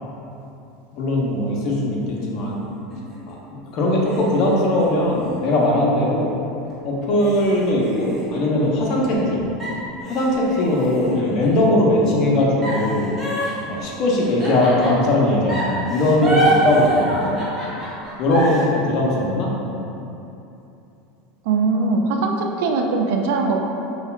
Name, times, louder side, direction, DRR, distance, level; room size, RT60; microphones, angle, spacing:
voice 1, 0.9-2.6 3.3-3.4 3.7-6.3 6.8-9.4 10.0-13.1 13.7-17.4 18.2-19.5, left 1 dB, 55° left, -3 dB, 0.7 m, -20 dB
sound 1, 2.0-3.3 4.0-6.2 6.7-6.8 7.2-9.3 9.6-11.6 12.6-15.1 15.5-18.6, right 1 dB, 10° right, 1.3 m, -27 dB
voice 2, 21.5-23.6, right 3 dB, 70° right, 2 dB, 0.3 m, -21 dB
5.3 x 2.3 x 2.2 m, 2.9 s
hypercardioid pair, 100°, 0 cm